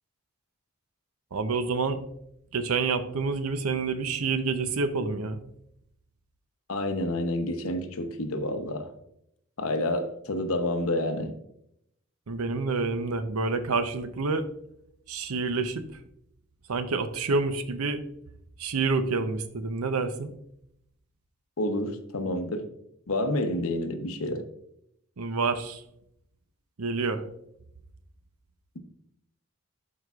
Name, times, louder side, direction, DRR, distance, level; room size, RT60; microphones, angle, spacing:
voice 1, 1.3-2.0 2.5-5.4 12.3-14.5 15.1-16.0 16.7-18.0 18.6-20.3 25.2-25.8 26.8-27.2, right 4 dB, 90° right, 10 dB, 0.7 m, -28 dB
voice 2, 6.7-8.9 9.6-11.3 21.6-22.7 23.1-24.4, left 1 dB, 80° left, 7 dB, 0.9 m, -29 dB
12.5 x 4.8 x 2.4 m, 0.75 s
head